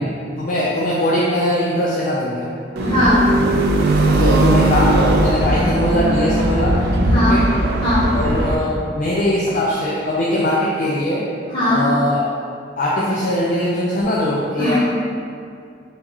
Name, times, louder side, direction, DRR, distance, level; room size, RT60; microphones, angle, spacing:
voice 1, 0.0-2.5 4.2-6.8 7.1-7.5 8.1-11.2 11.7-12.2 12.8-14.8, left 1 dB, 45° left, -6 dB, 0.4 m, -20 dB
voice 2, 2.8-3.3 7.0-7.4 7.8-8.1 11.5-11.9 14.6-14.8, equal, 30° left, -11 dB, 1.2 m, -18 dB
sound 1, 2.8-8.6, right 1 dB, 55° right, 0.3 m, -18 dB
3.8 x 2.8 x 2.9 m, 2.3 s
head